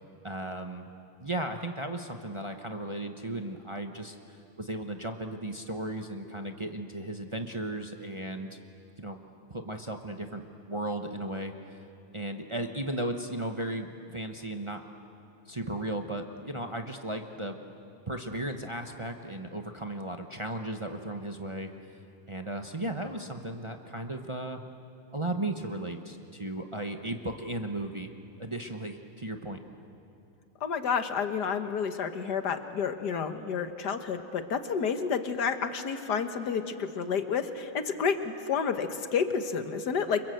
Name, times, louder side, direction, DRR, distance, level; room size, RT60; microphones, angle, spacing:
voice 1, 0.2-0.9 1.2-4.1 4.6-8.6 9.0-9.2 9.5-11.8 12.1-14.8 15.5-17.6 18.1-21.7 22.3-24.6 25.1-28.1 28.4-29.6, right 1 dB, 40° right, 4 dB, 0.4 m, -35 dB
voice 2, 30.6-40.2, left 6 dB, 55° left, 8 dB, 1.6 m, -30 dB
29.0 x 25.5 x 7.9 m, 2.7 s
omnidirectional pair, 2.4 m